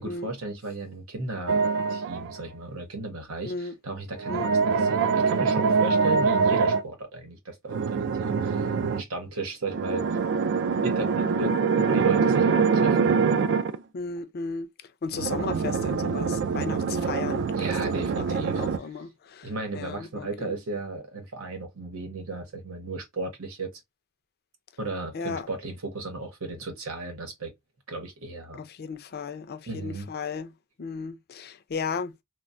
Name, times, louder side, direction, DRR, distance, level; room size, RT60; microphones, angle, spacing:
voice 1, 0.0-1.6 1.9-10.1 10.8-13.1 17.5-18.6 19.4-23.7 24.8-27.5 27.9-28.6 29.7-30.1, right 3 dB, 85° right, 1.0 m, -35 dB
sound 1, 1.5-2.4 4.2-6.8 7.7-9.0 9.7-13.8 15.1-18.8, right 5 dB, 55° right, 0.3 m, -24 dB
voice 2, 3.4-3.7 4.3-4.5 13.9-14.7 15.0-17.5 17.9-20.5 25.1-25.5 28.6-30.5 30.8-32.2, left 5 dB, 45° left, 0.4 m, -35 dB
3.2 x 2.1 x 2.4 m
head